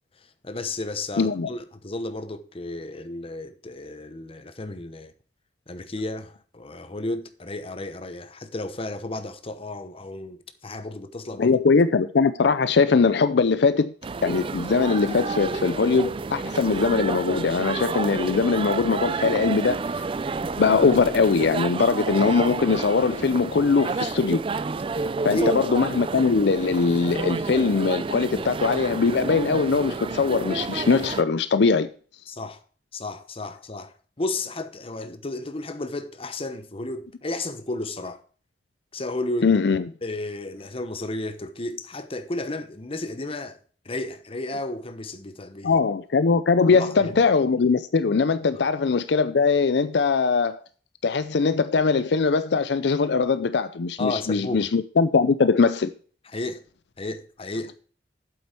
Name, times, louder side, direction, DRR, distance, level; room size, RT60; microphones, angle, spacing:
voice 1, 0.2-5.1 5.7-11.6 25.3-25.6 32.3-32.6 32.9-38.2 38.9-39.6 40.0-43.6 43.8-45.8 46.7-47.1 54.0-54.7 56.3-56.6 57.0-57.8, left 2 dB, 35° left, 0.9 m, -33 dB
voice 2, 1.2-1.5 11.4-13.9 14.2-19.8 20.6-24.4 25.2-31.9 39.4-39.8 45.6-50.6 51.0-55.9, left 4 dB, 70° left, 0.5 m, -21 dB
sound 1, 14.0-31.2, right 4 dB, 30° right, 0.4 m, -30 dB
8.6 x 7.8 x 4.4 m
head